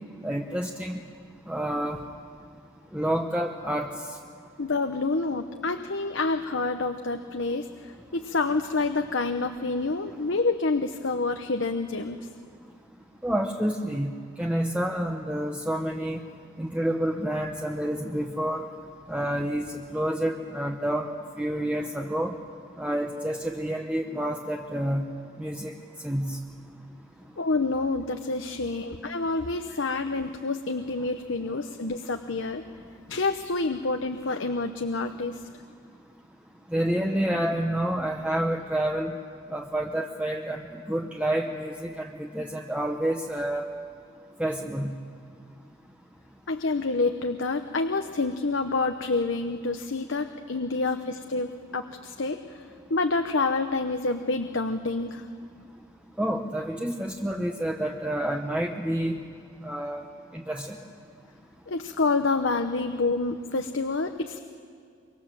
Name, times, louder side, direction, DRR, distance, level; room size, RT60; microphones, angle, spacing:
voice 1, 0.2-1.0 1.5-2.0 2.9-3.9 13.2-14.1 14.4-16.2 16.6-18.7 19.1-21.1 21.4-22.3 22.8-25.0 25.4-25.7 26.0-26.4 36.7-39.1 39.5-43.7 44.4-44.9 56.2-59.2 59.6-60.0 60.3-60.8, right 1 dB, 5° right, 2 dB, 0.9 m, -28 dB
voice 2, 4.6-12.3 27.4-32.6 33.1-35.4 46.5-55.3 61.7-64.4, left 3 dB, 70° left, 6 dB, 0.9 m, -28 dB
25.5 x 24.0 x 7.6 m, 2.3 s
head